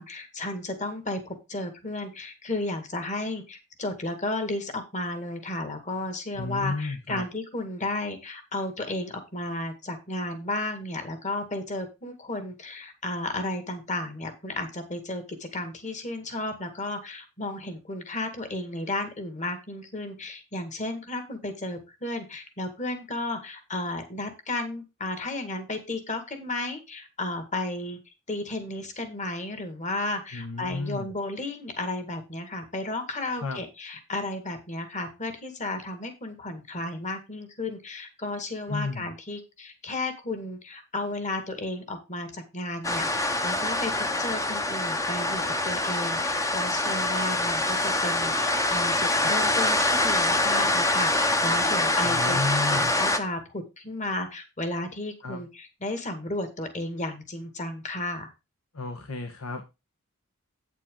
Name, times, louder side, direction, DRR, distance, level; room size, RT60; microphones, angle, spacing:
voice 1, 0.0-28.0 28.3-58.3, left 2 dB, 35° left, 8 dB, 1.9 m, -33 dB
voice 2, 6.4-7.3 30.3-31.1 33.4-33.6 38.7-39.1 52.0-52.9 55.2-55.4 58.7-59.6, left 3 dB, 70° left, 6 dB, 1.3 m, -32 dB
sound 1, 42.8-53.2, left 2 dB, 15° left, 0.9 m, -25 dB
8.9 x 8.3 x 3.8 m, 0.26 s
head